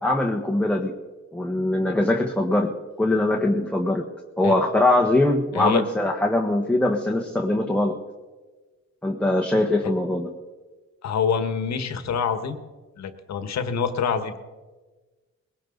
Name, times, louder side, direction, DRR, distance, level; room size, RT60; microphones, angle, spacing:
voice 1, 0.0-0.9 1.3-4.1 4.4-8.0 9.0-10.3, left 1 dB, 5° left, 0 dB, 1.4 m, -22 dB
voice 2, 11.0-12.6 13.0-14.4, left 6 dB, 60° left, 9 dB, 1.6 m, -26 dB
20.5 x 17.5 x 4.0 m, 1.3 s
cardioid pair, 90°, 30 cm